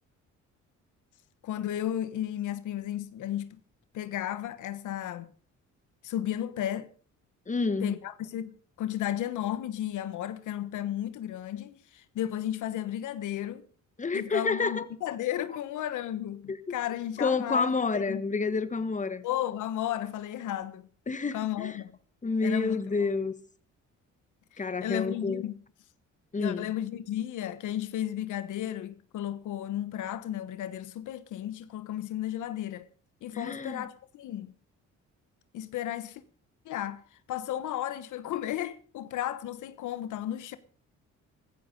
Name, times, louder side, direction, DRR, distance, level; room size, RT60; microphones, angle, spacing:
voice 1, 1.4-3.6 3.9-5.3 6.0-6.9 7.8-13.7 14.1-18.2 19.2-20.9 21.3-22.0 22.4-23.0 24.5-25.6 26.4-32.9 33.2-34.5 35.5-36.2 36.6-40.6, left 12 dB, 80° left, 1.3 m, -34 dB
voice 2, 7.5-8.0 14.0-14.8 16.5-16.6 17.2-19.2 21.1-21.8 22.2-23.3 24.6-25.4 26.3-26.7 33.3-33.8, left 4 dB, 25° left, 1.5 m, -29 dB
16.0 x 13.0 x 5.3 m
cardioid pair, 90°, 30 cm